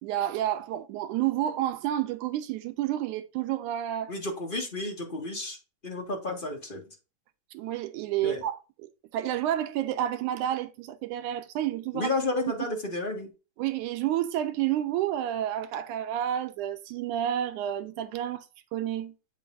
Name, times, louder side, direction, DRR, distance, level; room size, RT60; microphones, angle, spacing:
voice 1, 0.0-4.1 7.5-12.1 13.6-18.5 18.7-19.1, right 12 dB, 90° right, 2.2 m, -30 dB
voice 2, 4.1-5.6 5.8-6.8 8.2-8.4 11.9-13.3, left 2 dB, 25° left, 1.2 m, -32 dB
8.4 x 5.7 x 2.6 m
omnidirectional pair, 3.5 m